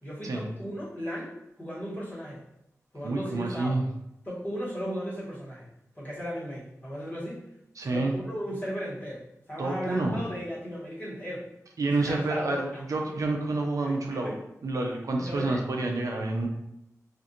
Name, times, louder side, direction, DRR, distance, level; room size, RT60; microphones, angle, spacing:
voice 1, 0.0-2.4 2.9-3.7 4.2-5.7 5.9-7.4 7.8-11.5 11.9-13.0 13.8-14.4 15.1-15.6, equal, 30° left, -8 dB, 1.2 m, -36 dB
voice 2, 3.0-3.8 7.8-8.2 9.6-10.2 11.8-14.4 14.6-16.5, right 2 dB, 70° right, 1 dB, 0.4 m, -28 dB
2.5 x 2.4 x 2.7 m, 0.81 s
wide cardioid pair, 75°, 6 cm